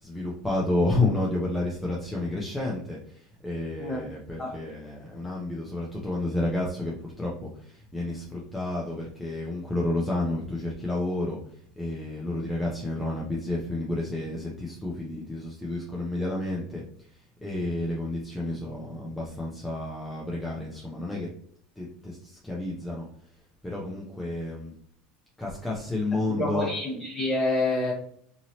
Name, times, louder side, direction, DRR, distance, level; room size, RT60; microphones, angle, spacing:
voice 1, 0.0-21.3 21.8-23.1 23.6-24.7 25.4-26.7, left 2 dB, 5° left, -4 dB, 0.6 m, -31 dB
voice 2, 26.3-27.9, left 2 dB, 25° left, -5 dB, 0.9 m, -27 dB
2.9 x 2.7 x 2.7 m, 0.64 s
supercardioid pair, 115°, 0 cm